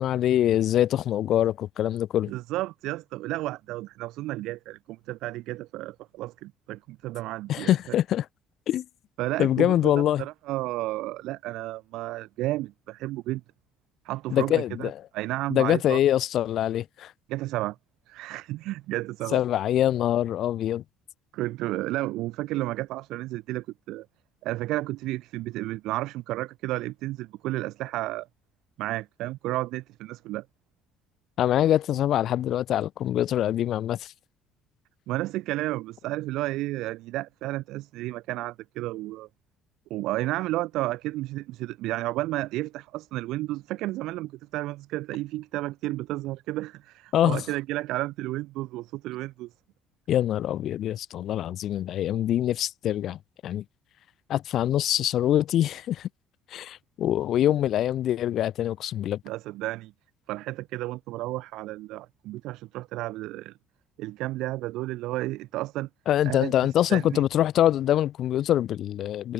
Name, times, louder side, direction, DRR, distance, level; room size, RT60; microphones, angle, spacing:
voice 1, 0.0-2.3 7.5-8.3 8.7-8.8 9.4-10.3 14.3-15.1 15.5-17.1 19.3-20.8 31.4-34.1 47.1-47.5 50.1-53.6 54.3-56.1 56.5-59.2 66.1-69.3, left 12 dB, 55° left, 7.7 m, -24 dB
voice 2, 2.3-7.7 9.2-13.4 14.0-16.0 17.3-17.8 18.1-19.4 21.3-24.1 24.4-28.3 28.8-30.4 35.1-39.3 39.9-49.5 59.3-59.9 60.3-63.5 64.0-65.9 66.3-66.5 66.9-67.2, right 17 dB, 75° right, 7.5 m, -32 dB
cardioid pair, 140°, 0 cm